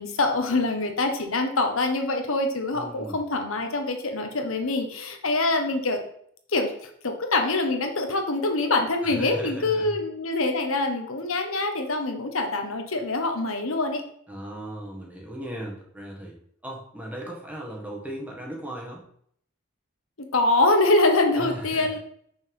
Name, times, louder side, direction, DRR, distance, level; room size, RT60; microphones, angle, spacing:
voice 1, 0.0-6.0 6.5-14.0 20.2-22.0, left 2 dB, 75° left, 5 dB, 1.2 m, -25 dB
voice 2, 2.7-3.2 9.0-9.9 14.3-16.3 16.6-19.0 21.3-21.9, right 1 dB, 5° right, -2 dB, 1.6 m, -37 dB
5.9 x 4.5 x 5.4 m, 0.65 s
head